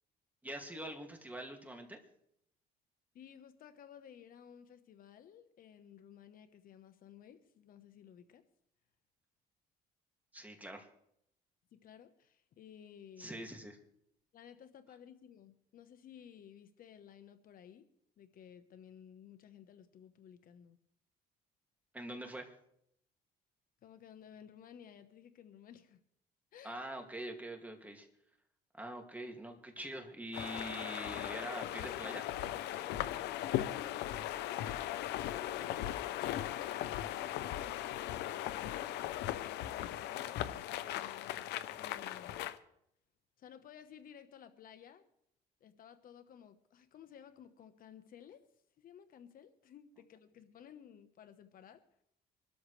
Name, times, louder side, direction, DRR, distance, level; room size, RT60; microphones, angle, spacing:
voice 1, 0.4-2.0 10.3-10.9 13.2-13.8 21.9-22.5 26.6-28.1 28.7-32.2, right 1 dB, 10° right, 2 dB, 2.3 m, -44 dB
voice 2, 3.1-8.4 11.7-13.4 14.3-17.9 18.2-20.8 23.8-26.0 26.5-26.8 33.5-34.1 34.4-38.9 39.3-42.5 43.4-45.0 45.6-48.5 48.8-51.8, left 9 dB, 55° left, 10 dB, 1.1 m, -56 dB
sound 1, 30.3-42.6, left 13 dB, 85° left, 0.8 m, -38 dB
24.5 x 13.0 x 3.3 m, 0.75 s
cardioid pair, 110°, 17 cm